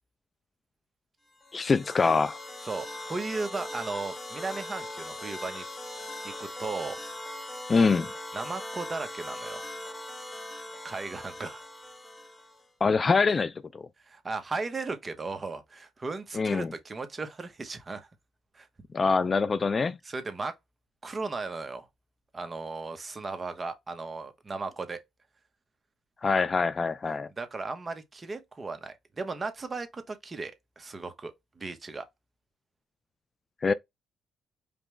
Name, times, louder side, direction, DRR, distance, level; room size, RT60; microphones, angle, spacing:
sound 1, 1.4-12.7, left 1 dB, 15° left, 0.9 m, -40 dB
voice 1, 1.5-2.4 7.7-8.1 12.8-13.9 16.3-16.7 18.9-20.0 26.2-27.3 33.6-33.7, left 4 dB, 35° left, 0.3 m, -24 dB
voice 2, 2.6-5.6 6.2-7.0 8.3-9.7 10.8-11.7 14.0-18.1 18.5-18.7 20.0-20.5 21.0-21.9 22.3-25.0 27.4-32.1, right 3 dB, 30° right, 1.0 m, -36 dB
5.1 x 2.3 x 3.2 m
cardioid pair, 90°, 0 cm